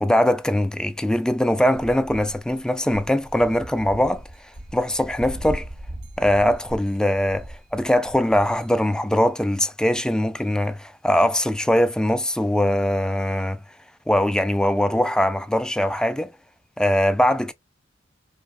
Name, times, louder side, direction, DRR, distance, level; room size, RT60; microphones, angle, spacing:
voice 1, 0.0-4.2 4.7-5.7 6.2-13.6 14.1-16.3 16.8-17.5, left 1 dB, 5° left, 0.4 m, -21 dB
sound 1, 2.4-8.9, right 1 dB, 65° right, 1.2 m, -39 dB
5.2 x 2.3 x 2.3 m
head